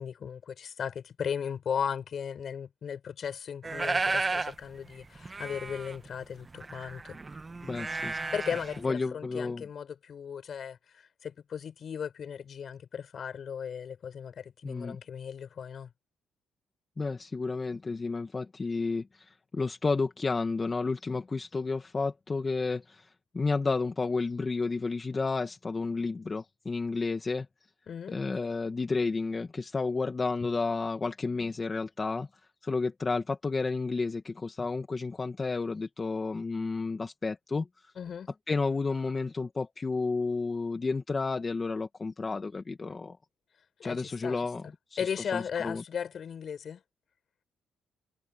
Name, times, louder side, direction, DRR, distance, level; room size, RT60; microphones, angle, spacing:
voice 1, 0.0-7.2 8.3-15.9 27.9-28.2 38.0-38.3 43.8-44.7 45.0-46.8, left 7 dB, 55° left, 6.1 m, -36 dB
sound 1, 3.6-4.5 4.9-5.0 5.2-8.8, right 3 dB, 25° right, 1.3 m, -33 dB
voice 2, 7.7-8.2 8.8-9.6 14.6-15.0 17.0-27.5 28.1-32.3 32.6-37.9 38.5-43.2 43.8-44.7 45.0-45.8, left 4 dB, 30° left, 1.7 m, -31 dB
cardioid pair, 90°, 0 cm